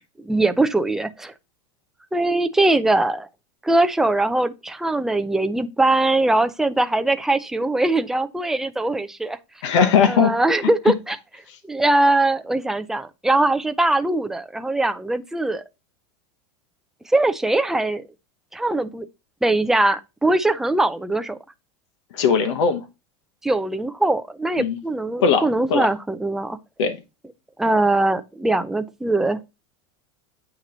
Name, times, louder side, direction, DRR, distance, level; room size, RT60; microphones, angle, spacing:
voice 1, 0.2-1.3 2.1-3.3 3.6-9.4 10.1-11.2 11.6-15.6 17.1-18.0 18.5-19.1 19.4-21.4 23.4-26.6 27.6-29.4, right 2 dB, 5° right, 0.4 m, -21 dB
voice 2, 9.6-10.3 22.1-22.8 24.6-24.8 25.2-25.9 26.8-27.0, left 6 dB, 85° left, 0.9 m, -19 dB
8.2 x 2.9 x 3.9 m
supercardioid pair, 140°, 15 cm